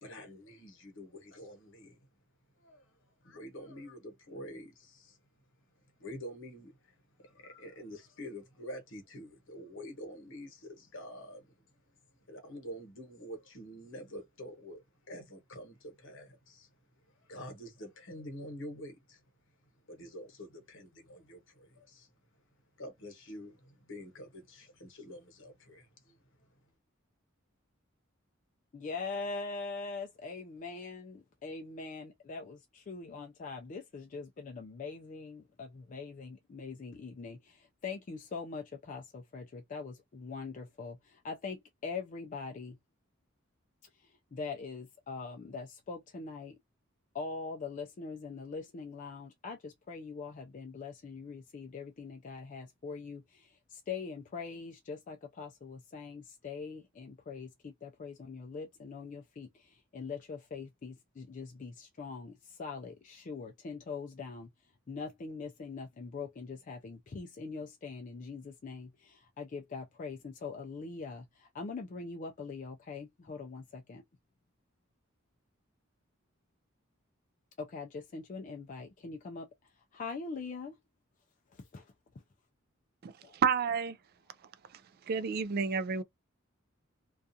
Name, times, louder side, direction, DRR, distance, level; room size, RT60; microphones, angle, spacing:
voice 1, 0.0-2.0 2.6-2.8 3.2-5.1 6.0-6.7 7.3-11.4 12.3-16.7 17.3-19.2 19.9-22.1 22.8-25.9, equal, 65° left, 1.0 m, -47 dB
voice 2, 28.7-42.8 43.9-46.6 47.1-64.5 64.9-74.0 77.6-80.8 81.5-81.9 83.2-83.4, left 4 dB, 40° left, 0.4 m, -42 dB
voice 3, 83.0-84.0 85.1-86.0, right 6 dB, 50° right, 0.3 m, -30 dB
2.4 x 2.3 x 2.7 m
head